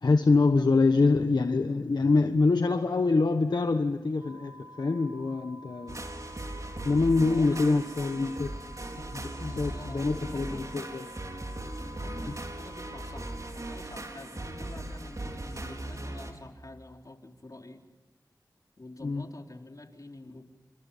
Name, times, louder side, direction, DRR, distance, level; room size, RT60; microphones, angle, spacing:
voice 1, 0.0-6.0 6.8-8.5 9.0-11.0 19.0-19.3, left 3 dB, 80° left, 6 dB, 1.3 m, -25 dB
sound 1, 4.2-13.5, equal, 70° right, 4.4 m, -50 dB
sound 2, 5.9-16.3, right 1 dB, 50° right, 4.5 m, -38 dB
voice 2, 7.3-7.6 9.5-10.7 11.8-17.8 18.8-20.4, left 2 dB, 55° left, 2 dB, 4.0 m, -47 dB
28.5 x 26.5 x 5.7 m, 1.1 s
wide cardioid pair, 45°, 7 cm